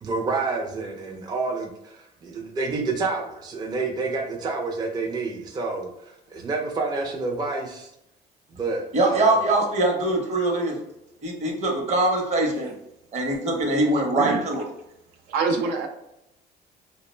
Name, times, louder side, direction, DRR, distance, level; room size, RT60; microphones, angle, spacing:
voice 1, 0.0-7.9 8.5-9.4, right 3 dB, 25° right, 1 dB, 0.4 m, -29 dB
voice 2, 8.9-10.8 11.2-12.7 13.1-14.6, right 2 dB, 40° right, 1 dB, 0.8 m, -23 dB
voice 3, 13.9-14.5 15.3-15.9, right 4 dB, 90° right, 3 dB, 0.4 m, -26 dB
2.3 x 2.1 x 3.1 m, 0.83 s
cardioid pair, 110°, 17 cm